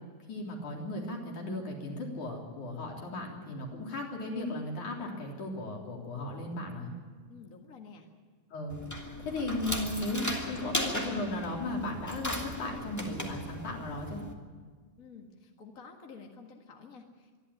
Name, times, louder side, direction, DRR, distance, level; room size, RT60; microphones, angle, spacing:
voice 1, 0.3-6.9 8.5-14.2, left 2 dB, 55° left, -1 dB, 4.9 m, -36 dB
voice 2, 7.3-8.1 15.0-17.4, left 5 dB, 35° left, 1 dB, 1.4 m, -50 dB
sound 1, 8.7-14.3, equal, 10° left, 0.8 m, -37 dB
25.5 x 11.5 x 9.9 m, 1.5 s
omnidirectional pair, 4.2 m